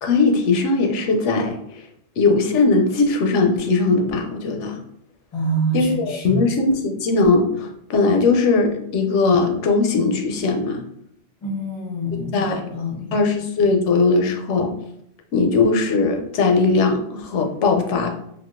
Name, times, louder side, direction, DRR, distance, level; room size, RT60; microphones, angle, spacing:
voice 1, 0.0-1.8 2.2-4.8 5.7-10.8 12.3-12.6 13.1-14.7 15.3-18.1, left 3 dB, 85° left, 3 dB, 0.9 m, -19 dB
voice 2, 5.3-6.5 11.4-13.2, right 2 dB, 35° left, 0 dB, 0.6 m, -26 dB
3.6 x 2.3 x 2.4 m, 0.74 s
omnidirectional pair, 1.2 m